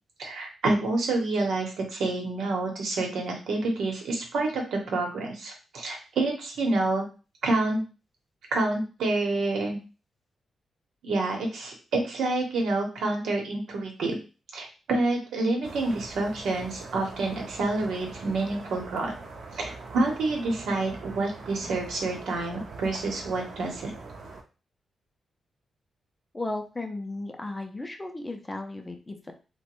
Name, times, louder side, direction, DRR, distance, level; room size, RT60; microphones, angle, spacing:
voice 1, 0.2-7.1 7.4-7.8 8.5-9.8 11.0-14.2 14.5-19.1 19.6-23.9, right 2 dB, 90° right, 1 dB, 0.8 m, -28 dB
sound 1, 15.6-24.4, right 3 dB, 55° right, 0.5 m, -42 dB
voice 2, 26.3-29.3, left 2 dB, 15° left, 5 dB, 0.4 m, -35 dB
3.0 x 2.1 x 2.9 m, 0.33 s
wide cardioid pair, 165°, 0 cm